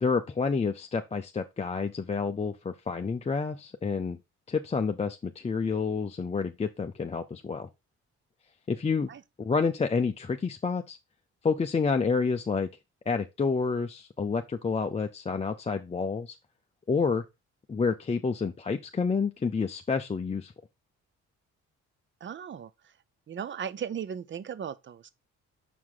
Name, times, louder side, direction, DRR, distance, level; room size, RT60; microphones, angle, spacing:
voice 1, 0.0-4.2 4.5-7.7 8.7-9.1 9.4-11.0 11.4-12.7 13.1-16.4 16.9-17.2 17.7-20.5, left 5 dB, 20° left, 0.6 m, -29 dB
voice 2, 22.2-23.0 23.3-25.1, right 8 dB, 40° right, 0.6 m, -37 dB
6.0 x 4.7 x 3.8 m
cardioid pair, 90°, 30 cm